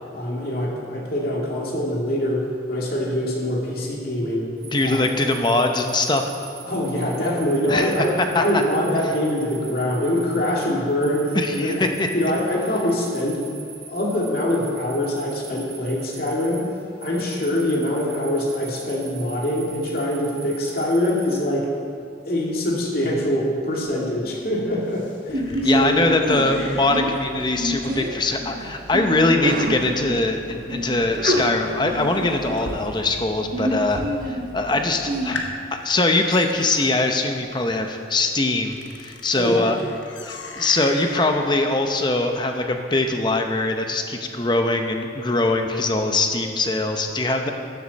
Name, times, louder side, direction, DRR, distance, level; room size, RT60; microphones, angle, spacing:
voice 1, 0.1-4.5 4.8-5.0 6.7-11.9 12.1-13.4 13.9-16.7 17.0-21.7 22.2-26.0 39.4-39.7, left 1 dB, 50° left, -3 dB, 2.3 m, -24 dB
sound 1, 4.6-21.4, right 5 dB, 25° right, 1.6 m, -42 dB
voice 2, 4.7-6.3 7.7-7.9 8.3-8.4 11.3-12.1 25.5-35.5 35.8-39.8 40.2-47.5, left 2 dB, 25° left, 5 dB, 0.8 m, -22 dB
Door Close Heavy Metal Glass Slow Creak Seal Theatre, 24.5-33.4 33.7-34.3 34.7-34.8 35.1-43.4, left 3 dB, 80° left, 1.2 m, -40 dB
Sneeze, 25.3-35.3, equal, 50° right, 1.1 m, -28 dB
13.0 x 10.5 x 4.2 m, 2.3 s
head